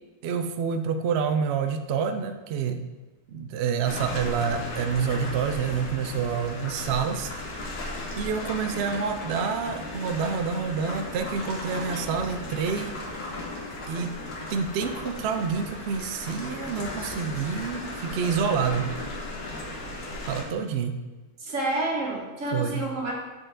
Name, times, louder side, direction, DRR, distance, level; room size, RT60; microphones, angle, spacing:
voice 1, 0.2-2.9 3.3-7.3 8.2-13.0 13.9-14.1 14.5-18.9 20.2-21.0 22.5-22.8, right 6 dB, 85° right, 7 dB, 0.5 m, -28 dB
sound 1, 3.8-20.4, left 2 dB, 75° left, 1.7 m, -36 dB
voice 2, 21.4-23.1, right 2 dB, 55° right, -2 dB, 1.7 m, -29 dB
7.9 x 4.6 x 3.7 m, 1.2 s
omnidirectional pair, 1.7 m